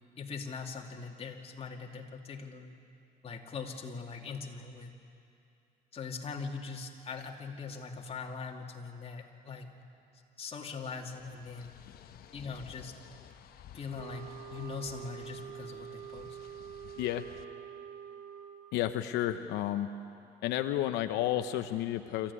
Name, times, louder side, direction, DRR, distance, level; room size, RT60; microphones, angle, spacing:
voice 1, 0.2-2.8 3.2-4.9 5.9-9.7 10.4-11.7 12.3-13.0 13.7-16.4, left 5 dB, 35° left, 1 dB, 2.5 m, -41 dB
sound 1, 11.1-17.4, left 10 dB, 65° left, 1.1 m, -54 dB
sound 2, 14.0-18.9, right 9 dB, 55° right, 1.1 m, -46 dB
voice 2, 18.7-19.9 20.4-22.3, left 13 dB, 90° left, 8 dB, 0.8 m, -31 dB
26.5 x 15.0 x 9.8 m, 2.6 s
cardioid pair, 110°, 17 cm